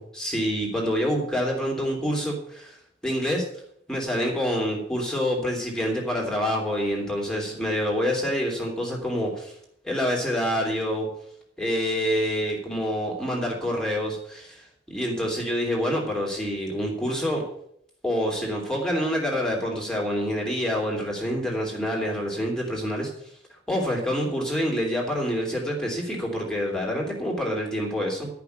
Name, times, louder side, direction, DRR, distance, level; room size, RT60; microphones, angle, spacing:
voice 1, 0.0-2.8 3.0-3.4 3.9-9.5 9.8-11.1 11.6-17.4 18.0-23.1 23.7-28.3, equal, 5° left, -2 dB, 3.2 m, -27 dB
13.0 x 6.0 x 8.1 m, 0.69 s
head